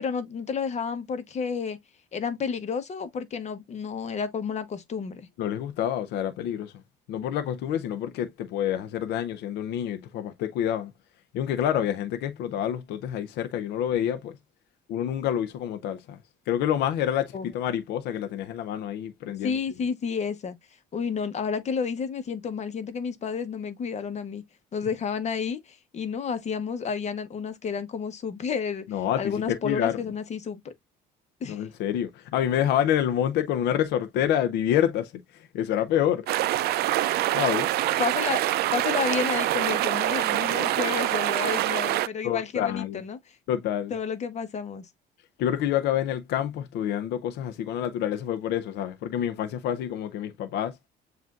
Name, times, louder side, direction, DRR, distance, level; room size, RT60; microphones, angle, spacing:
voice 1, 0.0-1.8 2.1-5.3 17.3-17.5 19.4-20.6 20.9-24.4 24.7-28.8 29.2-30.7 31.4-31.6 38.0-43.4 43.9-44.9, left 6 dB, 40° left, 0.9 m, -31 dB
voice 2, 5.4-6.7 7.1-10.9 11.3-14.3 14.9-16.2 16.5-19.6 28.9-30.0 31.5-36.3 37.3-37.7 42.2-43.0 43.5-43.9 45.4-50.8, left 10 dB, 80° left, 0.5 m, -27 dB
sound 1, 36.3-42.1, right 14 dB, 70° right, 0.4 m, -25 dB
7.4 x 2.6 x 2.4 m
cardioid pair, 110°, 17 cm